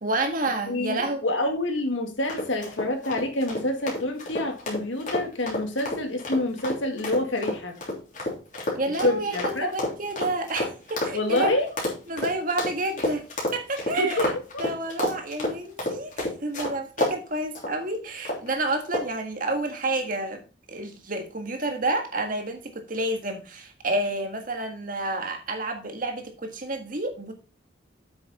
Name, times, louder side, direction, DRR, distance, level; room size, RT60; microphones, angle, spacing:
voice 1, 0.0-1.2 8.7-11.5 12.1-13.2 13.5-14.3 14.6-20.4 20.7-27.3, right 2 dB, 45° right, 1.7 m, -29 dB
voice 2, 0.6-7.8 9.0-9.7 11.1-11.7 14.0-14.2, left 1 dB, 90° left, 2.1 m, -27 dB
sound 1, 2.3-17.2 17.6-17.7 18.3-18.5 18.9-19.2, left 1 dB, 40° left, 3.2 m, -30 dB
8.3 x 6.2 x 4.2 m
head